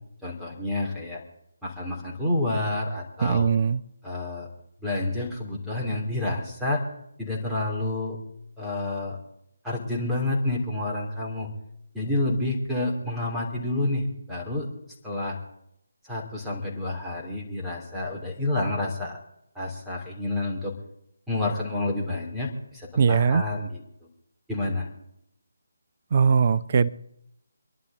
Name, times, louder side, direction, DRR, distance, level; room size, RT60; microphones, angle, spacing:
voice 1, 0.2-1.2 1.6-3.5 4.0-4.5 4.8-6.8 7.2-8.2 8.6-9.2 9.6-11.5 11.9-14.7 15.0-15.4 16.0-19.2 19.5-20.7 21.3-23.8 24.5-24.9, left 2 dB, 5° right, -5 dB, 3.0 m, -29 dB
voice 2, 3.2-3.8 23.0-23.4 26.1-26.9, right 6 dB, 35° right, 14 dB, 0.6 m, -20 dB
26.5 x 11.0 x 3.9 m, 0.78 s
figure-of-eight pair, 150°, 0 cm